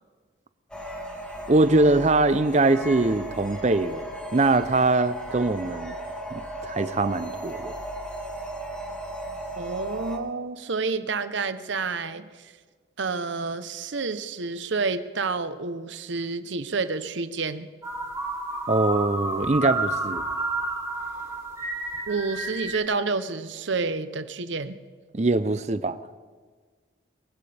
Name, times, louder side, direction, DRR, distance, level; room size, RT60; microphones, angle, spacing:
sound 1, 0.7-10.2, right 1 dB, 5° left, 1.3 m, -36 dB
voice 1, 1.5-4.0 4.3-5.9 6.3-7.7 18.7-20.2 25.1-26.0, right 2 dB, 35° right, 0.5 m, -22 dB
voice 2, 9.6-12.5 13.0-17.7 22.1-24.8, right 4 dB, 75° right, 0.8 m, -29 dB
sound 2, 17.8-22.8, right 2 dB, 15° right, 2.5 m, -30 dB
22.5 x 15.5 x 3.4 m
head